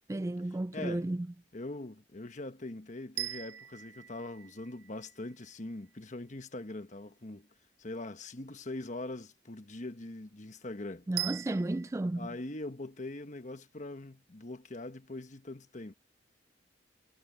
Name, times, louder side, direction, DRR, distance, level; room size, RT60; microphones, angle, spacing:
voice 1, 0.1-1.3 11.1-12.3, right 1 dB, 15° right, 0.3 m, -33 dB
voice 2, 0.7-1.0 1.5-7.5 7.8-11.1 12.1-15.9, left 2 dB, 45° left, 1.3 m, -42 dB
sound 1, 3.2-5.3 11.2-11.9, right 13 dB, 65° right, 1.5 m, -40 dB
head